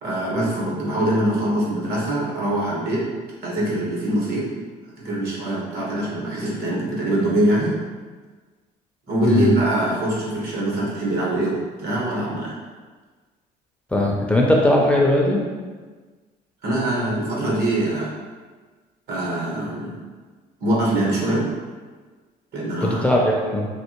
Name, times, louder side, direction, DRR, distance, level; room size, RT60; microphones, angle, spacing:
voice 1, 0.0-3.0 3.4-4.4 5.0-7.7 9.1-12.5 16.6-18.1 19.1-20.0 20.6-21.5 22.5-23.0, right 1 dB, 65° right, -5 dB, 1.2 m, -23 dB
voice 2, 13.9-15.4 22.8-23.7, left 1 dB, 5° left, -2 dB, 0.4 m, -19 dB
3.4 x 2.5 x 3.0 m, 1.4 s
cardioid pair, 110°, 17 cm